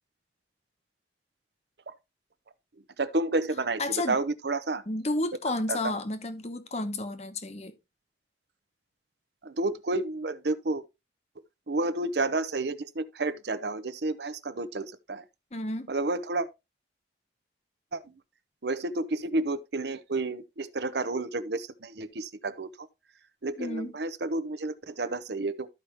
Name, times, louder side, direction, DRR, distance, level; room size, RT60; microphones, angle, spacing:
voice 1, 3.0-3.8 4.1-4.8 5.7-6.0 9.4-10.8 11.7-15.2 15.9-16.5 17.9-18.0 18.6-22.9 23.4-25.7, right 2 dB, 70° right, 0.8 m, -30 dB
voice 2, 3.8-4.2 4.9-7.7 15.5-15.9 23.6-23.9, left 2 dB, 35° left, 0.9 m, -31 dB
13.5 x 5.0 x 2.9 m
head